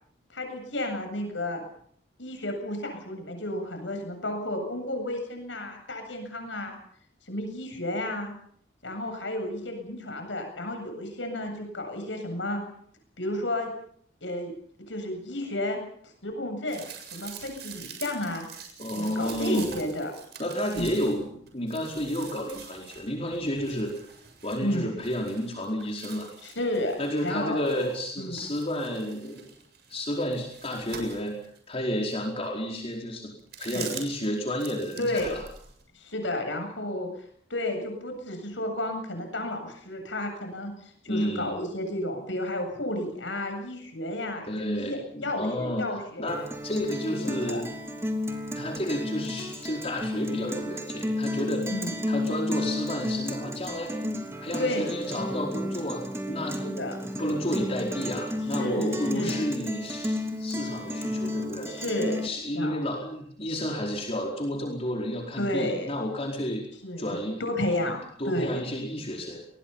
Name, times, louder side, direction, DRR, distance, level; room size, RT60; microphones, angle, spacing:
voice 1, 0.3-1.6 2.2-6.8 7.3-8.3 8.8-12.6 13.2-13.7 14.2-14.5 14.9-15.8 16.2-16.8 17.1-18.5 18.9-20.1 20.8-21.0 24.6-24.9 26.4-27.0 27.2-27.9 28.2-28.4 33.6-33.9 35.0-35.3 35.9-37.1 37.5-40.7 41.0-46.4 47.1-47.2 47.5-47.6 51.7-51.9 54.6-54.9 56.6-57.0 58.6-59.5 61.7-62.2 62.5-62.8 65.4-65.9 66.8-67.1 67.4-68.0 68.2-68.6, left 1 dB, 75° left, 5 dB, 7.8 m, -32 dB
sound 1, 16.7-28.1 28.4-31.6 32.1-32.2 33.4-34.3 34.5-35.8, right 6 dB, 60° right, 7.2 m, -44 dB
voice 2, 18.8-19.7 20.4-23.9 24.4-26.3 27.0-29.5 29.9-31.4 31.7-33.3 33.6-35.5 41.1-41.6 44.5-47.7 48.5-51.7 52.1-53.9 54.4-56.6 57.2-61.7 62.2-66.6 67.0-67.4 68.2-69.4, equal, 35° left, 0 dB, 4.7 m, -31 dB
Guitar, 46.3-62.3, left 1 dB, 15° right, 3.0 m, -32 dB
28.0 x 22.0 x 5.7 m, 0.63 s
head